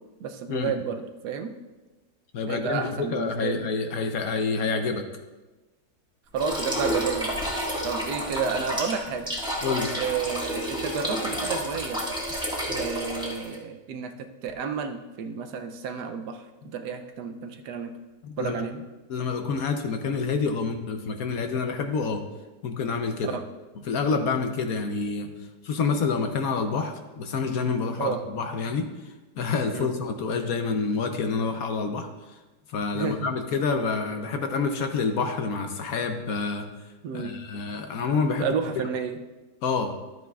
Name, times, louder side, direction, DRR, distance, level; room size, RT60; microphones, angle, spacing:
voice 1, 0.2-1.5 2.5-3.6 6.3-7.3 7.8-9.3 10.0-12.0 12.7-17.9 18.4-18.8 23.2-23.4 28.0-28.2 29.7-29.9 32.9-33.3 37.0-37.3 38.4-39.2, right 6 dB, 75° right, 6 dB, 1.2 m, -31 dB
voice 2, 2.3-5.0 9.6-9.9 18.2-18.6 19.1-22.2 22.6-23.4 23.8-25.3 25.6-32.1 32.7-36.6 37.1-38.9 39.6-39.9, left 4 dB, 65° left, 6 dB, 1.0 m, -28 dB
sound 1, 6.4-13.6, equal, 5° right, 1.4 m, -30 dB
12.5 x 9.1 x 2.3 m, 1.2 s
omnidirectional pair, 1.8 m